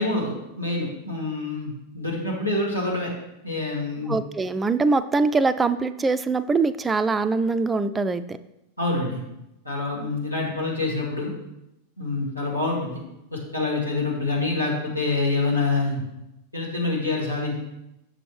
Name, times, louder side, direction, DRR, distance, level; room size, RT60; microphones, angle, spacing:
voice 1, 0.0-3.1 3.4-4.2 8.8-9.2 9.6-11.3 12.0-13.0 13.3-16.0 16.5-17.5, left 3 dB, 85° left, -4 dB, 2.0 m, -26 dB
voice 2, 4.1-8.4, right 3 dB, 15° right, 12 dB, 0.3 m, -23 dB
6.9 x 6.7 x 3.2 m, 0.88 s
figure-of-eight pair, 90°, 0 cm